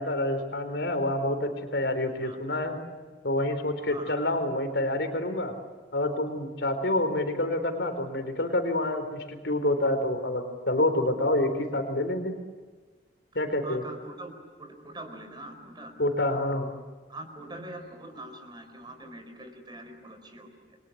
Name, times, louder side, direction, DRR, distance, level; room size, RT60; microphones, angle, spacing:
voice 1, 0.0-2.8 3.2-5.5 5.9-12.4 13.3-13.8 16.0-16.7, left 1 dB, 75° left, 7 dB, 4.1 m, -27 dB
voice 2, 3.9-4.3 13.6-14.3 14.6-16.1 17.1-20.8, right 1 dB, 25° right, 7 dB, 4.4 m, -43 dB
29.0 x 24.0 x 8.6 m, 1.4 s
head